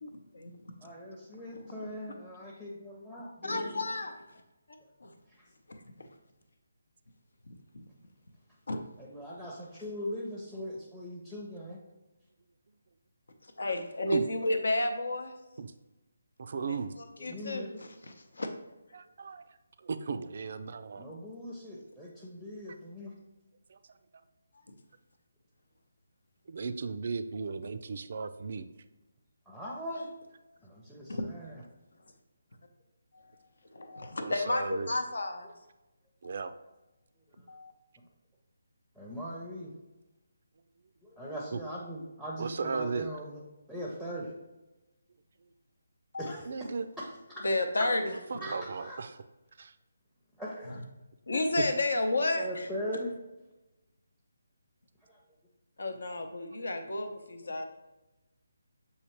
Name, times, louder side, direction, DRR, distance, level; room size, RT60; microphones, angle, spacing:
voice 1, 0.0-0.7 1.5-1.6 3.4-4.4 5.0-5.1 5.7-6.1 7.4-7.8 8.7-8.8 13.4-15.3 16.7-18.5 24.5-24.8 31.1-31.2 33.1-33.4 33.7-35.5 36.2-36.5 37.5-37.7 46.1-46.3 47.4-48.4 50.7-50.8 51.3-52.7 55.8-57.7, left 2 dB, 70° left, 6 dB, 0.7 m, -32 dB
voice 2, 0.8-3.7 5.3-5.4 9.0-11.8 17.2-17.8 21.0-23.1 29.5-30.1 30.6-31.6 38.9-39.7 41.0-43.4 43.7-44.3 46.2-47.4 48.4-49.1 50.4-50.8 51.3-51.4 52.4-53.2 55.1-55.4, equal, ahead, -4 dB, 0.6 m, -40 dB
voice 3, 16.4-16.9 18.9-19.4 19.8-21.0 26.5-28.6 34.2-34.9 36.2-36.5 42.4-43.1 46.5-46.8 48.3-49.1 49.6-49.7, right 4 dB, 55° right, 10 dB, 0.3 m, -35 dB
6.4 x 2.8 x 3.0 m, 1.0 s
figure-of-eight pair, 150°, 0 cm